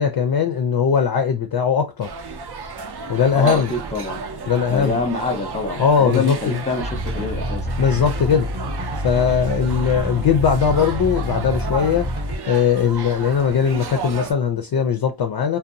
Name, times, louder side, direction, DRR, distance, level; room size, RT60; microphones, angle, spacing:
voice 1, 0.0-2.1 3.1-3.7 4.5-5.0 5.8-6.6 7.8-8.5 9.0-15.6, left 7 dB, 50° left, 0.4 m, -20 dB
sound 1, 2.0-14.3, right 5 dB, 55° right, 0.6 m, -33 dB
voice 2, 3.3-4.2 4.7-7.7, left 3 dB, 15° left, 0.7 m, -25 dB
sound 2, 6.8-12.4, equal, 20° right, 0.8 m, -27 dB
2.6 x 2.2 x 2.6 m
wide cardioid pair, 130°, 49 cm